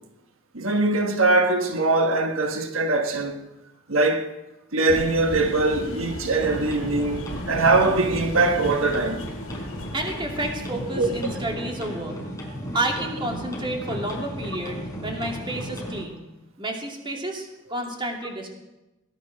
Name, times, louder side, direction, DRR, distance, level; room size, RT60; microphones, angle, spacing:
voice 1, 0.5-3.4 3.9-4.3 4.7-9.2 10.9-11.1, right 3 dB, 85° right, 1.4 m, -22 dB
sound 1, 4.9-11.3, left 1 dB, 90° left, 2.4 m, -36 dB
sound 2, 6.4-16.0, equal, 15° left, 4.1 m, -35 dB
voice 2, 9.9-12.1 12.7-16.2 16.6-18.5, right 1 dB, 25° right, 2.7 m, -30 dB
19.0 x 10.5 x 6.4 m
head